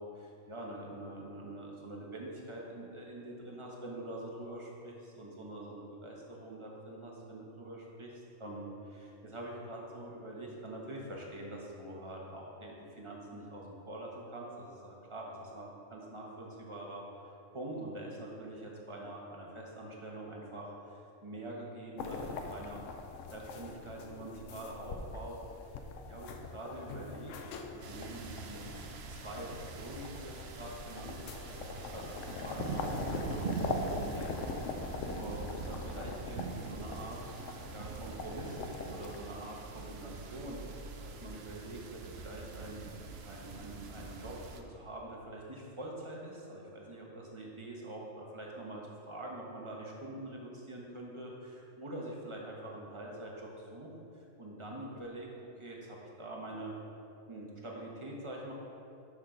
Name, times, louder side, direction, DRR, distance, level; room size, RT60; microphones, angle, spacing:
voice 1, 0.0-22.9 23.3-25.4 26.0-28.7 29.1-32.0 32.4-34.6 35.1-37.2 37.7-40.6 41.0-42.8 43.3-53.9 54.4-55.3 55.6-56.7 57.3-58.5, right 1 dB, 25° right, -2 dB, 1.1 m, -45 dB
sound 1, 22.0-39.2, left 4 dB, 80° left, 1.0 m, -42 dB
sound 2, 27.8-44.6, right 5 dB, 60° right, 0.8 m, -43 dB
6.4 x 5.9 x 5.1 m, 2.6 s
omnidirectional pair, 1.3 m